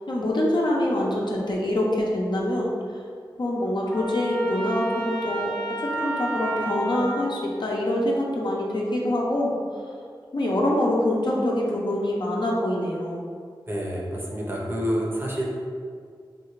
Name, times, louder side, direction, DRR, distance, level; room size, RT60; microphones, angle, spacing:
voice 1, 0.1-2.7 3.4-5.5 5.8-9.5 10.3-13.2, left 1 dB, 55° left, -3 dB, 0.6 m, -25 dB
Trumpet, 3.9-7.3, right 2 dB, 15° left, 0.8 m, -31 dB
voice 2, 13.7-15.4, equal, 25° right, -4 dB, 0.7 m, -28 dB
3.5 x 2.4 x 3.0 m, 2.1 s
wide cardioid pair, 65°, 9 cm